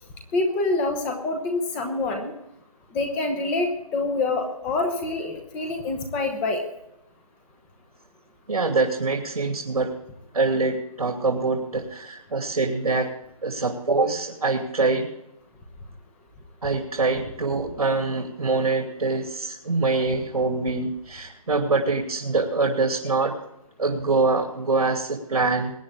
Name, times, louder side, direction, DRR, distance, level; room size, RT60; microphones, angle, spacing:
voice 1, 0.3-2.3 2.9-6.6, left 3 dB, 5° left, 5 dB, 0.9 m, -26 dB
voice 2, 8.5-9.9 10.3-13.1 13.4-15.1 16.6-23.4 23.8-25.7, right 3 dB, 90° right, 2 dB, 2.9 m, -24 dB
21.5 x 9.4 x 3.6 m, 0.81 s
hypercardioid pair, 170°, 19 cm